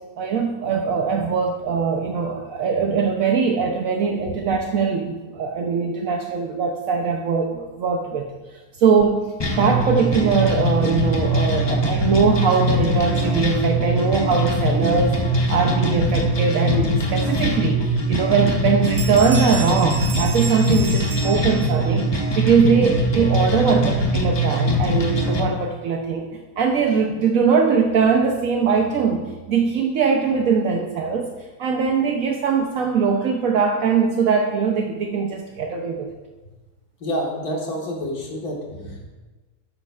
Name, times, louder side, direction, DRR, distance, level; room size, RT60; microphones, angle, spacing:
voice 1, 0.2-8.3 8.8-15.2 15.5-26.3 26.6-31.3 31.6-36.1, right 5 dB, 70° right, 2 dB, 1.1 m, -21 dB
sound 1, 9.4-25.4, equal, 30° left, 0.5 m, -22 dB
sound 2, 18.4-18.6 18.8-22.0, right 3 dB, 35° right, 1.0 m, -33 dB
voice 2, 37.0-39.1, equal, 85° left, -1 dB, 2.1 m, -28 dB
11.5 x 8.4 x 2.4 m, 1.2 s
omnidirectional pair, 1.6 m